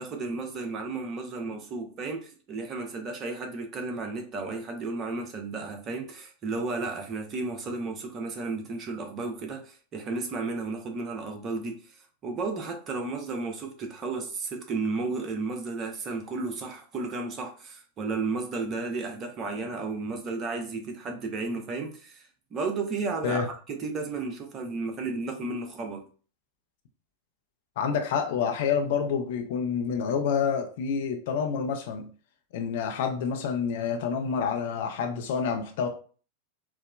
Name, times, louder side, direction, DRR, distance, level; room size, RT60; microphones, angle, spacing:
voice 1, 0.0-26.1, right 3 dB, 30° right, 0.7 m, -33 dB
voice 2, 27.8-32.1 32.5-35.9, left 6 dB, 55° left, 0.5 m, -28 dB
4.6 x 2.1 x 2.3 m
figure-of-eight pair, 90°, 0 cm